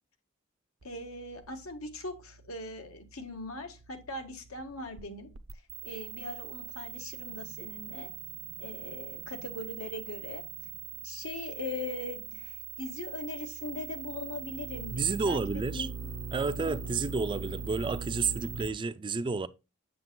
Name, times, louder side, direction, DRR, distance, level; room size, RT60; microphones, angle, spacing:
voice 1, 0.8-5.3 5.8-8.1 8.6-10.4 11.0-15.9 16.6-16.8, left 2 dB, 80° left, 1.5 m, -40 dB
sound 1, 0.8-18.7, right 6 dB, 75° right, 0.7 m, -42 dB
voice 2, 14.9-15.9 16.3-19.5, right 4 dB, 20° right, 0.3 m, -31 dB
7.8 x 7.5 x 2.2 m
head